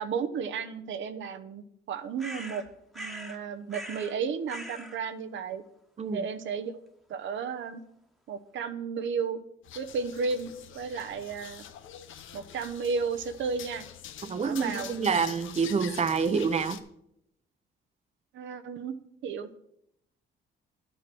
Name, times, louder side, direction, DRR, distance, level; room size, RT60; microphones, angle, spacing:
voice 1, 0.0-2.6 2.9-5.6 6.1-6.8 7.1-7.8 8.3-9.4 9.7-10.5 10.7-11.6 12.3-13.9 14.2-14.9 18.3-19.0 19.2-19.6, right 5 dB, 75° right, 9 dB, 1.0 m, -33 dB
sound 1, 2.2-3.4 3.7-4.2 4.5-5.0, right 1 dB, ahead, 1.4 m, -41 dB
sound 2, 9.6-16.8, left 9 dB, 80° left, 1.0 m, -45 dB
voice 2, 14.3-16.8, right 5 dB, 35° right, 11 dB, 0.9 m, -27 dB
11.5 x 7.9 x 6.1 m, 0.75 s
cardioid pair, 90°, 20 cm